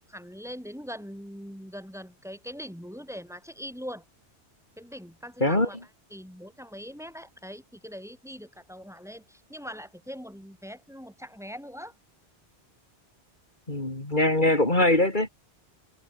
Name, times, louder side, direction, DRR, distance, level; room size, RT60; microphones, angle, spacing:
voice 1, 0.1-4.0 4.8-5.8 6.1-11.9, equal, ahead, 4.5 m, -41 dB
voice 2, 13.7-15.3, left 1 dB, 45° left, 3.8 m, -22 dB
omnidirectional pair, 1.1 m